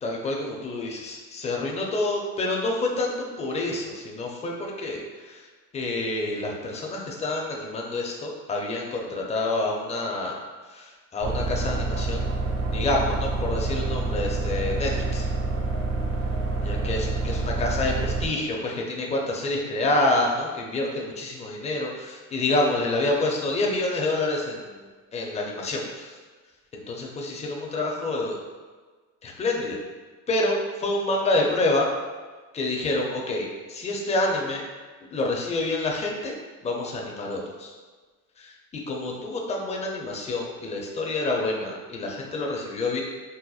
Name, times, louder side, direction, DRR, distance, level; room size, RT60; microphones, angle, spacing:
voice 1, 0.0-5.5 5.7-10.4 10.7-12.3 12.6-15.3 16.6-24.8 25.1-26.1 26.7-28.4 29.2-29.8 30.3-31.9 32.5-34.6 35.1-36.3 36.6-37.7 38.4-43.0, left 2 dB, 20° left, -1 dB, 0.5 m, -28 dB
sound 1, 11.2-18.3, right 3 dB, 60° right, 1.0 m, -27 dB
4.2 x 2.1 x 2.3 m, 1.4 s
supercardioid pair, 95°, 36 cm